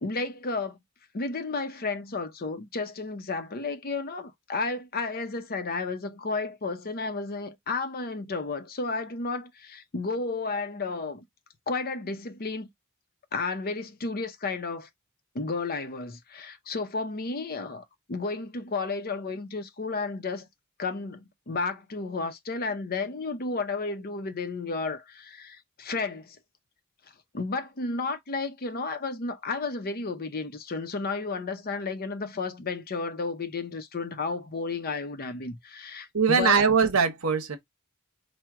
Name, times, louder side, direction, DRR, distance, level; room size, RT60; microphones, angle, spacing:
voice 1, 0.0-0.8 1.1-11.2 11.7-12.7 13.3-14.9 15.3-20.5 20.8-26.4 27.3-36.6, left 3 dB, 45° left, 0.6 m, -32 dB
voice 2, 36.1-37.6, right 5 dB, 70° right, 0.9 m, -21 dB
4.5 x 2.1 x 3.6 m
head